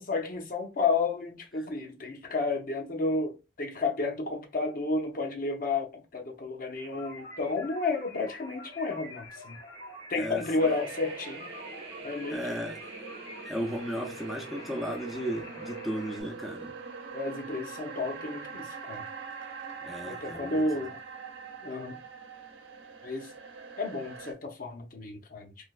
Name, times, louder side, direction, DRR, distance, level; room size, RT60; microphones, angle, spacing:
voice 1, 0.1-9.6 10.1-11.5 12.0-12.4 17.1-19.0 20.0-21.0 21.6-22.0 23.0-23.3 23.8-25.5, left 3 dB, 50° left, 0.7 m, -31 dB
sound 1, 6.7-16.2, left 1 dB, 70° left, 1.3 m, -47 dB
sound 2, 10.6-24.3, right 5 dB, 90° right, 0.7 m, -43 dB
voice 2, 12.3-12.8 13.5-16.7 19.8-20.9, equal, ahead, 0.4 m, -35 dB
3.3 x 2.7 x 2.3 m
head